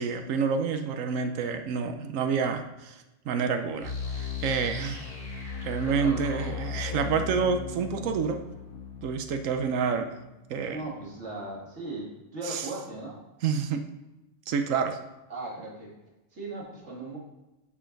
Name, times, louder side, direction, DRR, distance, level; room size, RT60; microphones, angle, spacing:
voice 1, 0.0-5.2 5.6-8.4 9.0-10.1 10.5-10.8 12.4-12.7 13.4-13.8 14.5-15.0, right 6 dB, 85° right, 7 dB, 1.1 m, -28 dB
sound 1, 3.8-10.6, left 6 dB, 90° left, 2.0 m, -37 dB
voice 2, 5.8-6.6 6.8-7.1 10.7-13.2 15.3-15.9 16.3-17.2, right 2 dB, 65° right, -4 dB, 2.5 m, -38 dB
11.0 x 6.2 x 3.9 m, 1.0 s
omnidirectional pair, 1.3 m